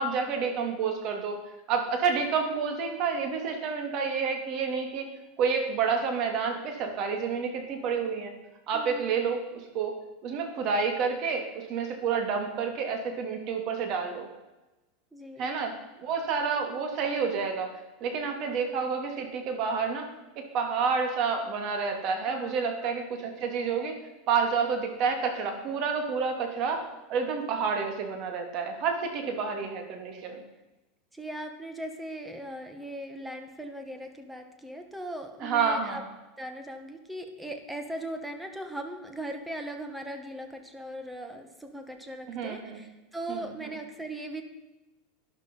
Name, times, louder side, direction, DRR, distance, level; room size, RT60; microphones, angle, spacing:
voice 1, 0.0-1.4 1.7-5.1 5.4-8.3 8.7-9.9 10.2-14.3 15.4-17.7 18.0-20.1 20.4-24.0 24.3-26.8 27.1-30.4 35.4-36.0 42.3-42.8 43.3-43.7, right 5 dB, 40° right, 4 dB, 2.9 m, -29 dB
voice 2, 8.7-9.2 15.1-15.5 22.3-22.9 29.2-29.4 31.1-36.0 36.4-44.4, right 1 dB, 5° right, 6 dB, 1.5 m, -39 dB
12.5 x 11.5 x 5.6 m, 1.1 s
supercardioid pair, 155°, 0 cm